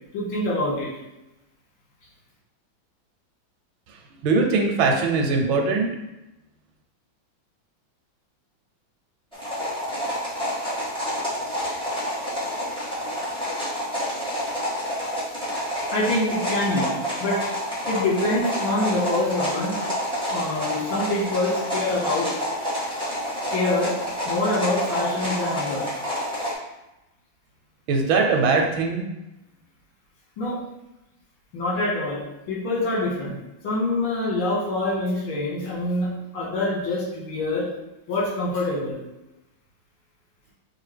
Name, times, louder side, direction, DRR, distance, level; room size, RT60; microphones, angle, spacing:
voice 1, 0.1-0.9 15.9-16.9 17.2-17.4 17.9-19.7 20.3-22.3 23.5-23.9 24.3-25.9 30.4-30.6 31.5-33.3 33.6-37.7 38.1-39.0, left 2 dB, 80° left, -5 dB, 2.2 m, -25 dB
voice 2, 4.2-5.9 27.9-29.0, right 4 dB, 85° right, 2 dB, 1.5 m, -21 dB
sound 1, 9.3-26.5, equal, 5° left, 0.8 m, -28 dB
6.2 x 2.4 x 3.3 m, 0.95 s
omnidirectional pair, 2.2 m